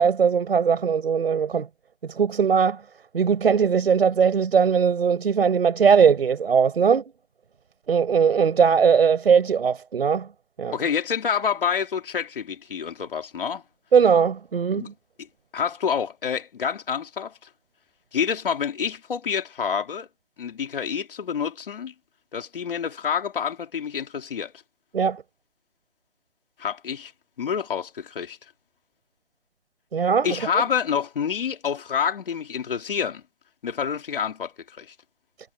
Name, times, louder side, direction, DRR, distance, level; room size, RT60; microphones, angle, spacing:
voice 1, 0.0-1.7 2.0-2.8 3.1-7.0 7.9-10.3 10.6-10.7 13.9-14.9 24.9-25.2 29.9-30.3 30.5-30.6, right 6 dB, 60° right, 5.9 m, -20 dB
voice 2, 10.7-13.6 14.7-14.9 15.5-17.3 18.1-20.1 20.4-21.9 22.3-24.5 26.6-27.1 27.4-28.4 30.2-33.2 33.6-34.9, left 7 dB, 50° left, 2.9 m, -27 dB
hypercardioid pair, 175°, 34 cm